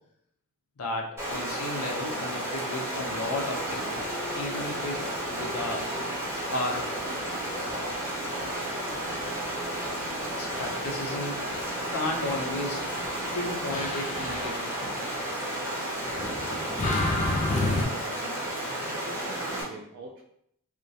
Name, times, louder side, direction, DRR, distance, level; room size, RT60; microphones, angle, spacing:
voice 1, 0.8-4.0 4.3-5.8 6.5-6.9 10.4-11.5 11.9-12.9 13.3-14.9, left 1 dB, 85° left, 1 dB, 0.5 m, -34 dB
Stream, 1.2-19.6, right 1 dB, 10° right, 0.7 m, -32 dB
sound 1, 3.0-15.5 16.1-17.8, left 2 dB, 35° left, 0.4 m, -35 dB
voice 2, 16.6-18.5 18.9-20.2, right 2 dB, 55° right, -1 dB, 0.3 m, -46 dB
2.2 x 2.1 x 2.7 m, 0.70 s
head